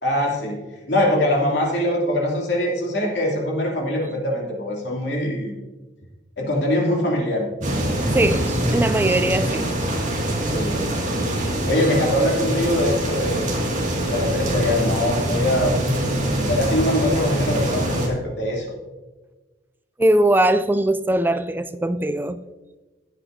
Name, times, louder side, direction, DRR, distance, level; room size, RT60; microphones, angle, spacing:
voice 1, 0.0-5.6 6.4-7.5 10.4-11.0 11.7-13.5 14.0-15.7 16.4-18.7, left 1 dB, 60° left, 2.9 m, -23 dB
sound 1, 7.6-18.1, right 1 dB, 40° right, 2.2 m, -24 dB
voice 2, 8.1-9.7 20.0-22.4, right 1 dB, 10° right, 0.3 m, -20 dB
15.5 x 8.3 x 2.7 m
head